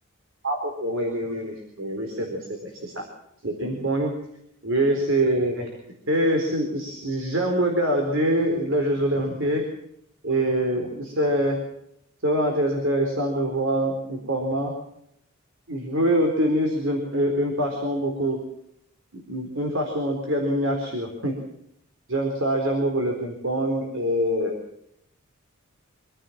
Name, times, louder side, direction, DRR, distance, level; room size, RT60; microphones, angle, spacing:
voice 1, 0.4-3.0 3.4-4.1 4.6-5.7 6.1-9.7 10.2-11.6 12.2-14.7 15.7-18.4 19.1-21.3 22.1-24.5, right 1 dB, 65° right, 3 dB, 4.2 m, -24 dB
26.0 x 15.5 x 7.3 m, 0.75 s
head